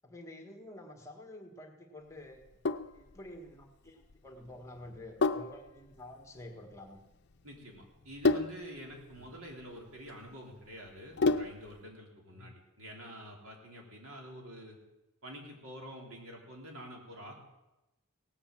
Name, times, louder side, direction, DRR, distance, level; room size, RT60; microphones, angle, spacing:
voice 1, 0.0-2.4 2.8-7.0 9.2-9.3 12.4-12.5, left 1 dB, 15° left, 3 dB, 1.7 m, -49 dB
Sink (filling or washing), 2.3-11.8, left 3 dB, 55° left, 0.6 m, -34 dB
voice 2, 7.4-14.8 15.2-17.3, equal, 80° right, 0 dB, 3.6 m, -47 dB
17.5 x 8.5 x 7.5 m, 0.98 s
head